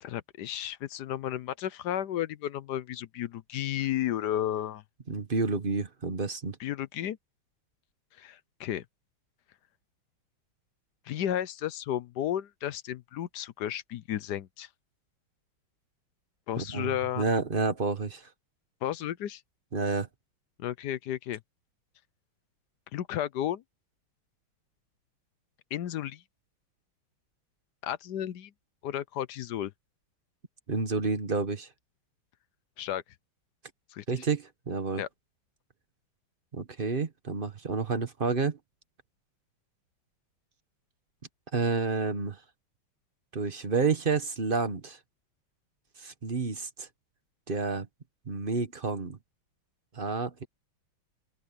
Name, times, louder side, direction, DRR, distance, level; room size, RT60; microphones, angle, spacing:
voice 1, 0.0-4.8 6.6-7.2 8.2-8.8 11.1-14.7 16.5-17.2 18.8-19.4 20.6-21.4 22.9-23.6 25.7-26.2 27.8-28.5 28.8-29.7 32.8-33.0 33.9-34.0 35.0-35.1, left 11 dB, 65° left, 1.1 m, -33 dB
voice 2, 5.1-6.6 16.6-18.3 19.7-20.1 30.7-31.7 34.1-35.0 36.5-38.6 41.5-42.4 43.3-45.0 46.0-46.9 47.5-47.9 48.3-49.2 49.9-50.4, right 4 dB, 30° right, 1.1 m, -30 dB
open air
omnidirectional pair, 2.3 m